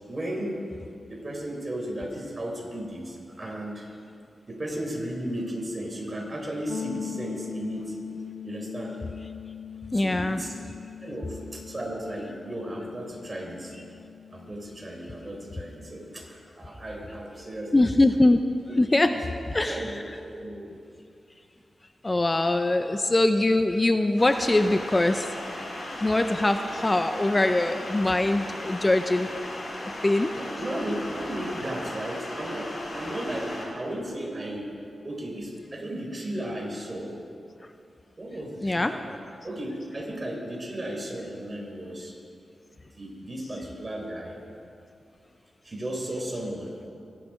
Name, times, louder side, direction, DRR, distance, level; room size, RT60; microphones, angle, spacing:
voice 1, 0.1-0.6 1.0-3.9 4.5-8.0 8.4-9.0 9.9-10.5 11.0-13.7 14.3-17.9 19.1-19.3 19.6-20.8 30.3-34.7 35.0-37.1 38.2-42.1 42.9-44.4 45.6-46.7, right 1 dB, 35° right, 0 dB, 4.8 m, -35 dB
sound 1, 6.7-16.4, left 8 dB, 80° left, 0.7 m, -41 dB
voice 2, 9.9-10.4 17.7-18.4 18.8-19.1 19.5-19.9 22.0-25.3 26.0-29.3 30.0-30.3 38.6-38.9, left 2 dB, 25° left, 8 dB, 0.7 m, -22 dB
sound 2, 24.2-33.6, left 1 dB, 55° left, 4.0 m, -37 dB
23.0 x 11.0 x 5.2 m, 2.5 s
cardioid pair, 55°, 0 cm